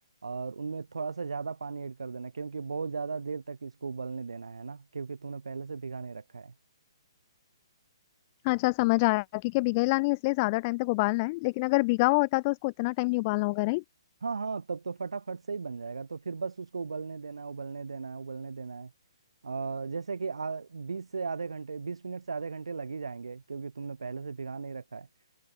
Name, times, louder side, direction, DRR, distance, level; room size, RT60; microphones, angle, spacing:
voice 1, 0.2-6.5 14.2-18.9 19.4-25.1, right 4 dB, 90° right, 1.3 m, -36 dB
voice 2, 8.4-13.8, left 25 dB, 30° left, 0.6 m, -26 dB
hypercardioid pair, 150°, 3 cm